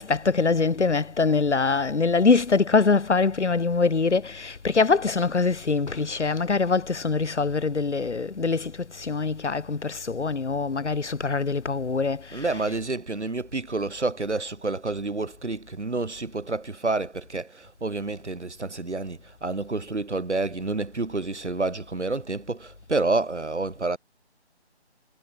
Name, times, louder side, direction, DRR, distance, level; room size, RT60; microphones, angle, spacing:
voice 1, 0.0-12.8, left 4 dB, 90° left, 1.3 m, -24 dB
voice 2, 12.3-24.0, right 3 dB, 85° right, 3.2 m, -29 dB
figure-of-eight pair, 170°, 34 cm